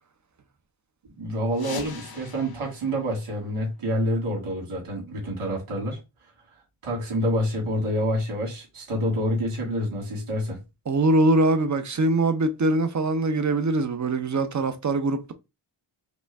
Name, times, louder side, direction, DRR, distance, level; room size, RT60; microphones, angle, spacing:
voice 1, 1.2-6.0 6.8-10.6, equal, 85° right, 2.3 m, -27 dB
sound 1, 1.5-4.1, left 6 dB, 50° left, 0.7 m, -42 dB
voice 2, 10.9-15.3, right 2 dB, 35° right, 0.7 m, -22 dB
5.1 x 2.3 x 3.4 m
wide cardioid pair, 105°, 49 cm